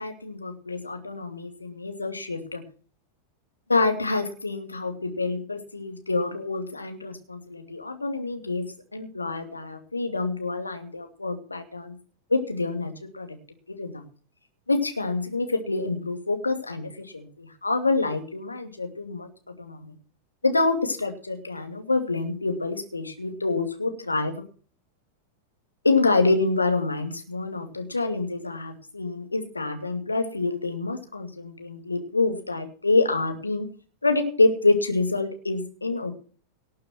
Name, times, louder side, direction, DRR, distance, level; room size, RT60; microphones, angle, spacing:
voice 1, 0.0-2.6 3.7-8.7 8.9-12.0 12.3-13.4 13.7-14.0 14.7-19.3 19.6-19.9 20.4-24.4 25.8-33.7 34.0-36.1, left 3 dB, 80° left, 6 dB, 2.4 m, -27 dB
18.5 x 6.7 x 6.1 m, 0.40 s
figure-of-eight pair, 90°, 0 cm